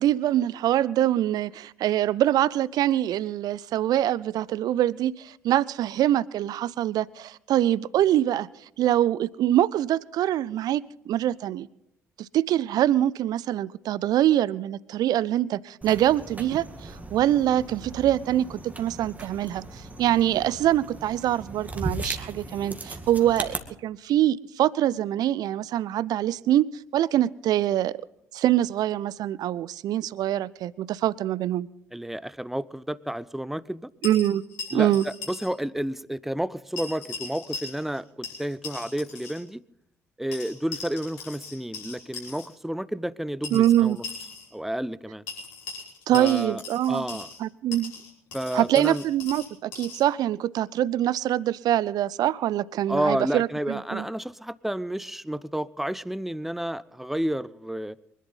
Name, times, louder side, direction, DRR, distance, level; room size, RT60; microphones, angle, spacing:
voice 1, 0.0-8.5 8.8-11.7 12.2-23.5 23.8-26.7 26.9-28.0 28.3-31.7 34.0-34.4 34.7-35.0 43.5-44.0 46.1-47.0 47.4-47.9 48.5-54.0, right 12 dB, 55° right, 0.5 m, -24 dB
sound 1, 15.8-23.6, right 2 dB, 20° right, 2.2 m, -38 dB
voice 2, 31.9-33.9 34.7-39.6 40.2-44.0 44.5-45.2 46.1-46.6 46.9-47.3 48.3-49.0 52.9-58.0, right 1 dB, 5° right, 0.6 m, -31 dB
sound 2, 34.0-35.5 35.8-35.9 36.8-38.0 38.2-39.4 40.3-42.5 43.4-44.5 45.3-47.4 47.7-50.0, left 4 dB, 65° left, 5.2 m, -39 dB
24.5 x 11.0 x 4.0 m
figure-of-eight pair, 45°, 8 cm